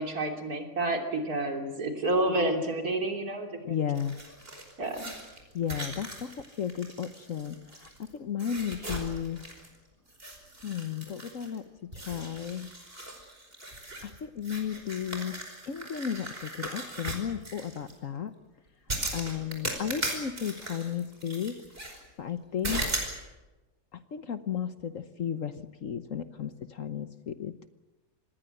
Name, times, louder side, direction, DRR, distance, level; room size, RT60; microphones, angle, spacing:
voice 1, 0.0-3.8 4.8-5.1, right 2 dB, 65° right, 3 dB, 3.7 m, -29 dB
voice 2, 3.6-4.2 5.5-9.4 10.6-12.7 14.0-18.3 19.1-21.6 22.2-23.1 23.9-27.6, left 8 dB, 55° left, 11 dB, 1.3 m, -34 dB
sound 1, 4.0-8.1 8.4-9.8 10.1-11.6 11.9-17.9 18.9-22.0 22.6-23.2, right 1 dB, 35° right, 5.4 m, -38 dB
26.5 x 20.0 x 7.9 m, 1.1 s
omnidirectional pair, 1.7 m